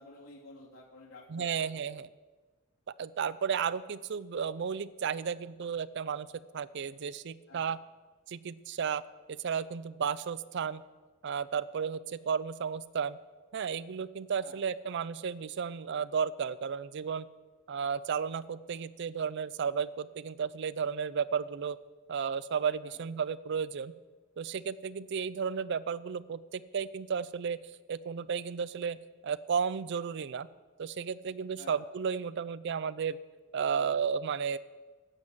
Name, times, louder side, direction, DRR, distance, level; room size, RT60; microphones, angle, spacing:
voice 1, 0.0-2.0 7.5-7.7 14.4-14.6 22.8-23.0 31.6-31.8, left 2 dB, 75° left, -2 dB, 2.9 m, -52 dB
voice 2, 1.3-2.1 3.0-7.8 8.3-9.0 9.3-10.8 11.2-13.2 13.5-17.3 17.7-21.8 22.1-23.9 24.4-27.6 27.9-29.0 29.2-30.5 30.8-33.2 33.5-34.6, right 6 dB, 55° right, 17 dB, 0.4 m, -33 dB
11.5 x 7.8 x 7.4 m, 1.3 s
head